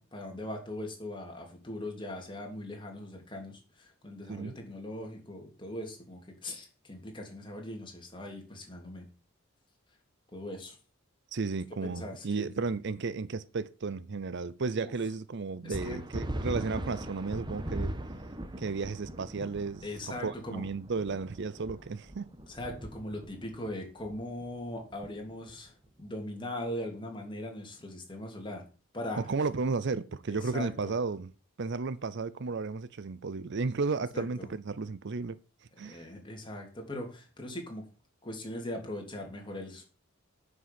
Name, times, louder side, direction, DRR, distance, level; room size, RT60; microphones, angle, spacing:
voice 1, 0.0-9.1 10.3-10.8 11.8-12.5 14.8-14.9 15.6-16.0 17.6-17.7 19.8-20.6 22.5-28.6 28.9-29.2 30.3-30.9 34.1-34.5 35.8-37.9 38.2-39.8, left 1 dB, 25° left, 3.3 m, -40 dB
voice 2, 11.3-18.0 18.6-19.8 20.2-22.3 29.2-31.3 31.6-35.4 35.8-36.1, right 4 dB, 55° right, 0.6 m, -33 dB
sound 1, 15.7-25.7, right 1 dB, 20° right, 1.1 m, -40 dB
9.4 x 6.6 x 7.7 m
head